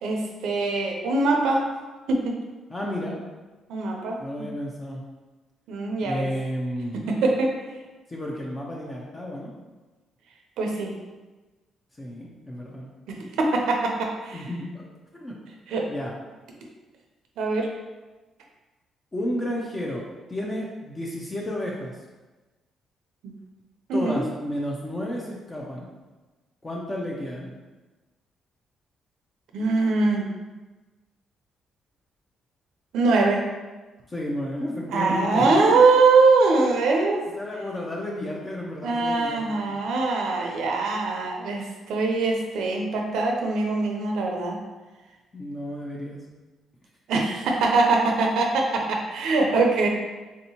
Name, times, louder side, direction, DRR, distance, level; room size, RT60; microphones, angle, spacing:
voice 1, 0.0-1.7 2.1-2.4 3.7-4.5 5.7-6.3 7.1-7.6 10.6-10.9 13.1-14.5 15.7-15.9 17.4-17.7 23.9-24.2 29.5-30.3 32.9-33.4 34.9-37.2 38.8-44.6 47.1-49.9, right 3 dB, 85° right, 1 dB, 0.5 m, -22 dB
voice 2, 2.7-3.2 4.2-5.0 6.0-7.0 8.1-9.5 12.0-12.9 14.3-14.9 15.1-15.3 15.9-16.1 19.1-22.0 23.9-25.9 26.6-27.5 34.1-35.8 37.3-39.8 45.3-46.2, left 1 dB, 25° left, -2 dB, 0.5 m, -32 dB
3.4 x 2.7 x 2.8 m, 1.2 s
cardioid pair, 90°, 0 cm